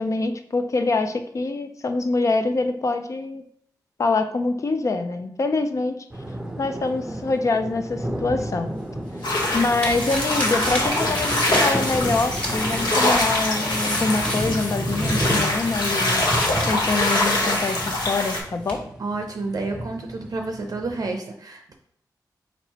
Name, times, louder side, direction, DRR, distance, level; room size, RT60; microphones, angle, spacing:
voice 1, 0.0-3.4 4.0-6.0 6.6-8.7 9.5-16.3 16.6-18.8, left 3 dB, 45° left, 8 dB, 0.4 m, -25 dB
sound 1, 6.1-21.1, right 1 dB, 10° right, 0.6 m, -32 dB
sound 2, 8.8-18.4 18.7-18.8, equal, 20° left, 1.4 m, -33 dB
sound 3, 9.2-18.4, left 2 dB, 85° left, 0.9 m, -24 dB
voice 2, 19.0-21.7, right 3 dB, 55° right, 3 dB, 0.5 m, -30 dB
4.4 x 4.0 x 2.8 m, 0.66 s
wide cardioid pair, 95°, 7 cm